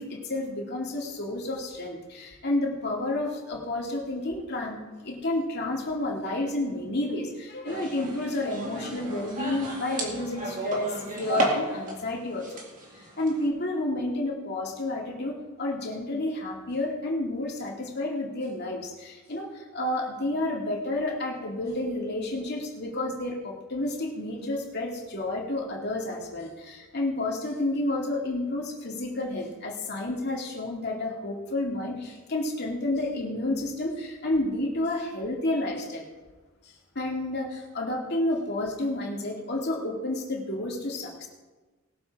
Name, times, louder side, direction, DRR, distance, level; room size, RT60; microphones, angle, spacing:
voice 1, 0.0-4.8 5.0-12.6 13.2-36.0 36.9-41.3, left 2 dB, 50° left, -1 dB, 2.5 m, -30 dB
sound 1, 7.7-12.0 12.3-13.5, right 1 dB, 40° right, 2.4 m, -33 dB
20.0 x 7.1 x 4.7 m, 1.3 s
head